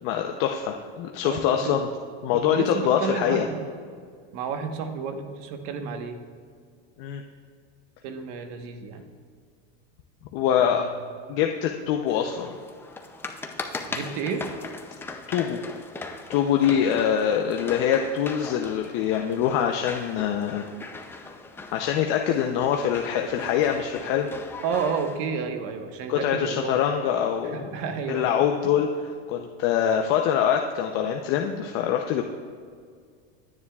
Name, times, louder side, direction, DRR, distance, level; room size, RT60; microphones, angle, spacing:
voice 1, 0.0-1.9 2.2-3.5 7.0-7.2 10.3-10.9 11.3-12.5 15.3-15.6 16.3-20.6 21.7-24.3 26.1-27.7 28.1-32.2, left 9 dB, 45° left, 3 dB, 0.7 m, -24 dB
voice 2, 1.2-1.8 2.3-3.7 4.3-6.2 8.0-9.0 10.6-10.9 13.9-14.5 16.7-16.9 24.6-26.7 27.4-28.3, right 5 dB, 50° right, 5 dB, 1.3 m, -31 dB
sound 1, 12.1-25.2, left 3 dB, 5° left, 0.4 m, -39 dB
25.0 x 9.9 x 2.4 m, 2.1 s
supercardioid pair, 150°, 32 cm